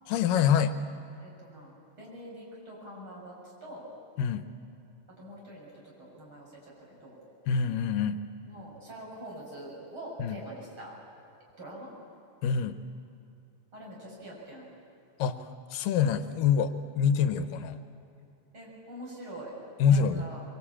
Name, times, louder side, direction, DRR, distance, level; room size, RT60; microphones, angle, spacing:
voice 1, 0.1-0.7 4.2-4.4 7.5-8.2 10.2-10.4 12.4-12.8 15.2-17.8 19.8-20.3, left 7 dB, 90° left, 10 dB, 2.6 m, -26 dB
voice 2, 1.2-3.9 5.2-7.2 8.5-10.9 11.6-11.9 13.7-14.7 16.9-17.1 18.5-19.5 19.9-20.4, right 1 dB, 35° right, -4 dB, 7.8 m, -45 dB
25.0 x 24.0 x 8.7 m, 2.6 s
omnidirectional pair, 3.8 m